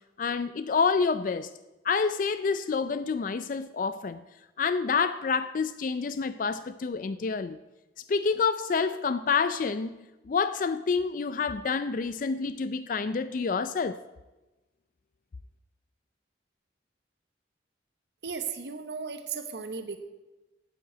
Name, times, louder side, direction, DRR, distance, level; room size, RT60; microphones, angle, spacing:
voice 1, 0.2-1.5 1.8-4.2 4.6-7.6 8.1-10.0 10.3-14.0, left 5 dB, 45° left, 13 dB, 0.4 m, -28 dB
voice 2, 18.2-20.0, right 5 dB, 65° right, 8 dB, 0.9 m, -35 dB
8.9 x 8.9 x 7.9 m, 1.1 s
head